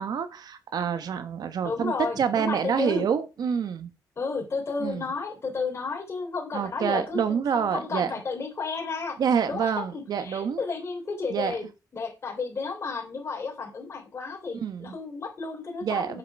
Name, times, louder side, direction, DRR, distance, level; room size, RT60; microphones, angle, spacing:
voice 1, 0.0-3.9 4.8-5.0 6.5-8.1 9.2-10.6 11.3-11.5 14.6-14.9 15.8-16.2, right 7 dB, 70° right, 1.2 m, -27 dB
voice 2, 1.6-3.0 4.2-9.2 9.5-16.2, left 4 dB, 40° left, 3.3 m, -32 dB
7.9 x 7.5 x 4.6 m
wide cardioid pair, 160°, 7 cm